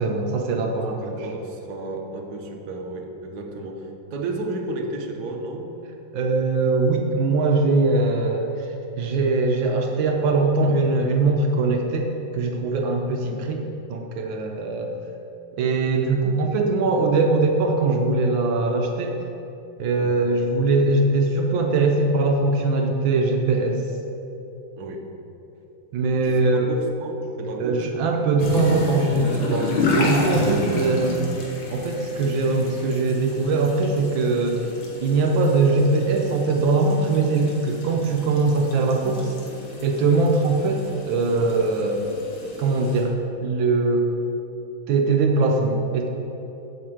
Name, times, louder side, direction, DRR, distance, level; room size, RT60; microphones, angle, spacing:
voice 1, 0.0-1.3 6.1-8.7 9.0-13.6 13.9-14.9 15.6-19.2 19.8-23.8 25.9-26.7 27.6-31.3 31.7-34.7 35.0-39.3 39.8-42.0 42.6-43.2 43.4-44.1 44.9-46.1, right 3 dB, 75° right, 2 dB, 1.5 m, -21 dB
voice 2, 0.7-5.7 20.0-20.3 24.8-25.1 26.2-27.8, right 2 dB, 60° right, 2 dB, 1.4 m, -33 dB
sound 1, 28.4-43.0, left 2 dB, 70° left, 2.1 m, -31 dB
7.9 x 5.8 x 7.7 m, 3.0 s
omnidirectional pair, 2.2 m